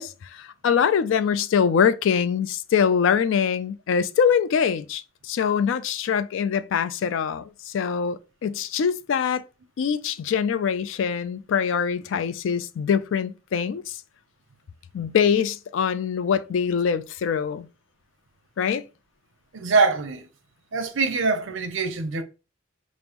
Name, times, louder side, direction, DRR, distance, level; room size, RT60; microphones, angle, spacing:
voice 1, 0.0-9.4 9.8-14.0 14.9-17.7 18.6-18.8, left 7 dB, 70° left, 0.3 m, -23 dB
voice 2, 19.5-20.2 20.7-22.2, right 4 dB, 70° right, 0.6 m, -23 dB
5.2 x 2.0 x 2.9 m
head